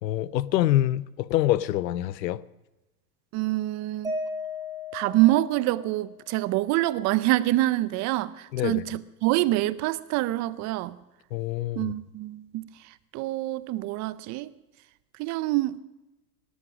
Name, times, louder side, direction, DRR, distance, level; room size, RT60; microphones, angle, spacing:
voice 1, 0.0-2.4 8.5-8.8 11.3-11.9, left 14 dB, 80° left, 0.8 m, -25 dB
voice 2, 3.3-4.1 4.9-11.0 11.8-12.7 13.1-14.5 15.2-15.8, right 17 dB, 35° right, 0.7 m, -26 dB
Mallet percussion, 4.0-6.3, left 2 dB, 5° right, 5.0 m, -35 dB
17.5 x 13.0 x 6.3 m
hypercardioid pair, 120°, 49 cm